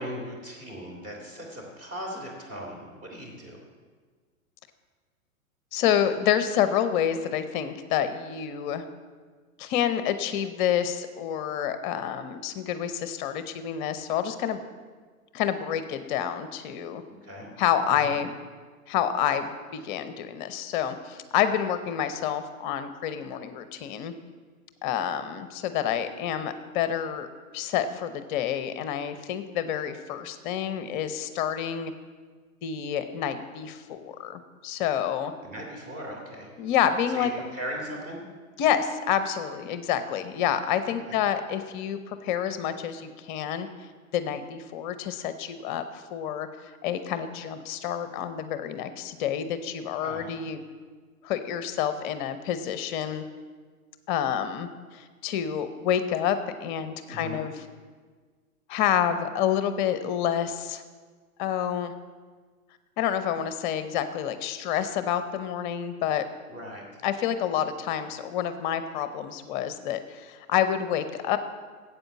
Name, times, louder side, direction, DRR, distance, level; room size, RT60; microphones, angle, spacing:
voice 1, 0.0-3.6 17.2-17.5 17.9-18.2 35.3-36.5 37.1-38.2 40.8-41.2 50.0-50.4 57.1-57.4 66.5-66.9, equal, 20° right, 0 dB, 3.1 m, -38 dB
voice 2, 5.7-8.8 9.6-14.6 15.3-17.0 17.6-18.3 18.9-24.1 24.8-27.3 27.5-31.9 32.6-35.3 36.6-37.3 38.6-43.7 44.1-46.5 46.8-50.6 51.2-53.2 54.1-57.5 58.7-60.8 61.4-61.9 63.0-66.2 67.0-71.4, left 9 dB, 35° left, 11 dB, 0.8 m, -28 dB
9.1 x 8.3 x 7.0 m, 1.5 s
figure-of-eight pair, 105°, 43 cm